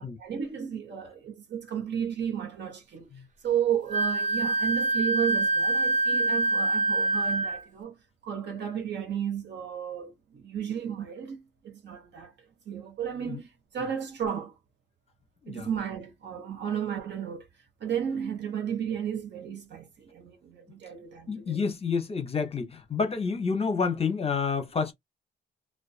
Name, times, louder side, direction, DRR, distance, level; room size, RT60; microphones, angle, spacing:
voice 1, 0.0-3.1 3.4-7.9 8.2-12.3 12.7-14.5 15.5-17.5 17.8-21.7, right 8 dB, 60° right, 1.0 m, -33 dB
Wind instrument woodwind instrument, 3.9-7.6, right 2 dB, 40° right, 0.6 m, -25 dB
voice 2, 21.3-24.9, left 5 dB, 30° left, 0.7 m, -29 dB
2.4 x 2.2 x 2.3 m
cardioid pair, 90°, 20 cm